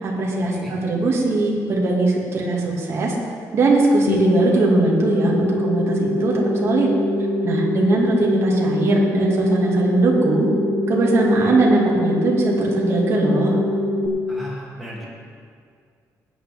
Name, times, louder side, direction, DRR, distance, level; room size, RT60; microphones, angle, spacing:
voice 1, 0.0-3.1 3.5-6.9 7.4-10.5 10.9-13.6, right 2 dB, 45° right, -2 dB, 2.1 m, -20 dB
sound 1, 4.1-14.1, left 1 dB, 70° left, 0.9 m, -23 dB
voice 2, 14.3-15.0, equal, ahead, -6 dB, 2.6 m, -35 dB
17.5 x 8.9 x 3.5 m, 2.2 s
cardioid pair, 165°, 6 cm